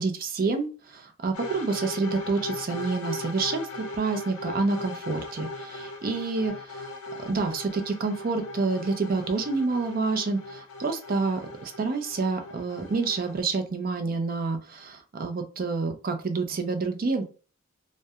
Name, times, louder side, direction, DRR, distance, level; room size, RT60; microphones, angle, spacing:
voice 1, 0.0-6.9 7.3-17.2, right 3 dB, 45° right, 6 dB, 0.4 m, -28 dB
sound 1, 1.3-13.4, left 2 dB, 80° left, 0.5 m, -38 dB
2.3 x 2.1 x 2.7 m, 0.36 s
head